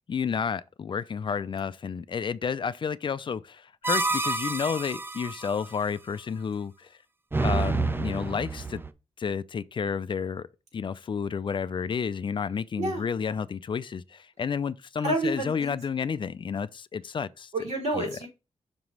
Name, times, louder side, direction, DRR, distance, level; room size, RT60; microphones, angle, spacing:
voice 1, 0.0-7.0 7.4-8.8 9.2-10.5 10.7-17.5 18.0-18.2, left 6 dB, 45° left, 0.4 m, -31 dB
sound 1, 3.8-5.5 7.3-8.9, right 3 dB, 20° right, 0.5 m, -28 dB
voice 2, 15.0-15.7 17.5-18.3, right 2 dB, 90° right, 3.9 m, -29 dB
6.0 x 3.0 x 5.3 m
cardioid pair, 65°, 11 cm